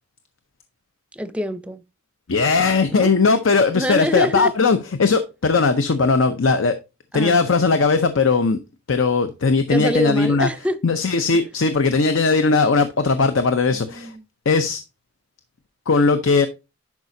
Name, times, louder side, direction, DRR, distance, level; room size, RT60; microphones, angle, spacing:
voice 1, 1.1-1.8 2.9-3.1 3.7-4.5 7.1-7.4 9.7-10.8 13.7-14.2, equal, 5° right, 0.5 m, -25 dB
voice 2, 2.3-6.7 7.1-8.6 8.9-10.5 10.8-14.1 14.5-14.8 15.9-16.5, left 4 dB, 85° left, 0.6 m, -18 dB
10.5 x 4.9 x 2.7 m
head